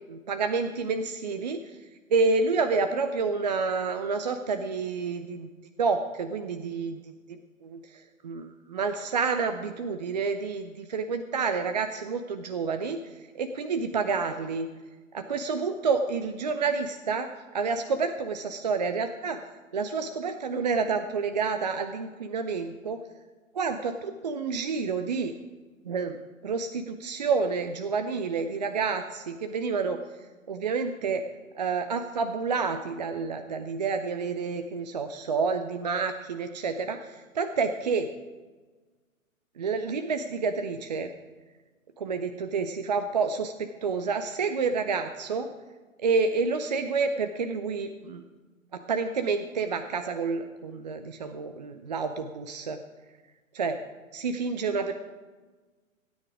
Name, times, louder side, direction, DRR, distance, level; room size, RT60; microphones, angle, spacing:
voice 1, 0.1-1.6 2.1-5.5 5.8-13.0 13.4-14.7 15.1-19.4 19.7-23.0 23.5-25.3 25.8-26.2 26.4-30.0 30.5-31.2 31.6-38.1 39.6-41.1 42.0-45.5 46.0-48.2 48.7-52.8 53.5-53.8 54.1-54.9, right 4 dB, 30° right, 8 dB, 0.5 m, -29 dB
16.5 x 9.4 x 4.9 m, 1.3 s
figure-of-eight pair, 120°, 41 cm